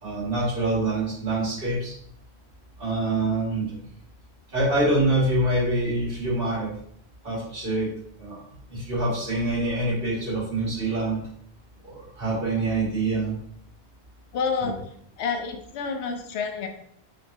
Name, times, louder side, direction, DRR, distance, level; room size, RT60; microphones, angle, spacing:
voice 1, 0.0-1.9 2.8-3.8 4.5-6.7 7.2-7.9 8.2-8.4 8.7-11.2 11.8-13.3 14.6-14.7, right 2 dB, 55° right, -6 dB, 1.9 m, -25 dB
voice 2, 14.3-16.7, left 5 dB, 85° left, 5 dB, 0.9 m, -29 dB
5.2 x 2.2 x 2.6 m, 0.67 s
omnidirectional pair, 1.1 m